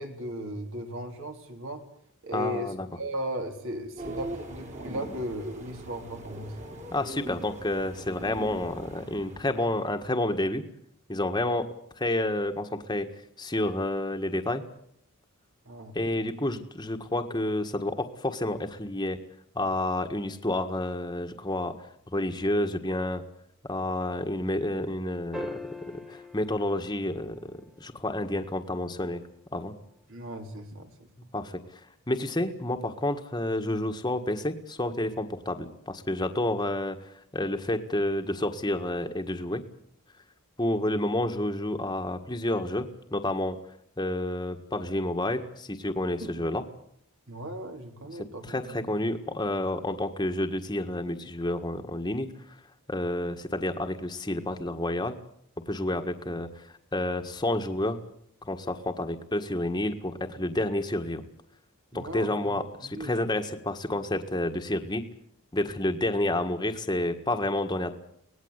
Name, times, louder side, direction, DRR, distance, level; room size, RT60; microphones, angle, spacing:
voice 1, 0.0-1.8 2.2-6.5 15.6-16.0 30.1-31.3 46.2-46.5 47.3-48.9 61.9-63.3, equal, 60° right, 5 dB, 3.5 m, -37 dB
voice 2, 2.3-2.9 6.9-10.6 11.1-11.7 12.0-13.1 13.4-14.6 15.9-19.2 19.5-21.7 22.1-23.2 23.7-25.5 26.1-27.4 27.8-29.2 29.5-29.7 31.3-31.6 32.1-37.0 37.3-39.6 40.6-43.6 44.0-46.6 48.5-52.3 52.9-55.1 55.7-56.7 56.9-58.0 58.4-61.2 61.9-65.1 65.5-68.0, left 1 dB, 20° left, 5 dB, 1.6 m, -29 dB
sound 1, 4.0-10.1, right 1 dB, 35° right, 3.1 m, -41 dB
sound 2, 25.3-27.9 30.1-30.2, left 2 dB, ahead, 1.1 m, -42 dB
24.5 x 19.0 x 8.2 m, 0.69 s
head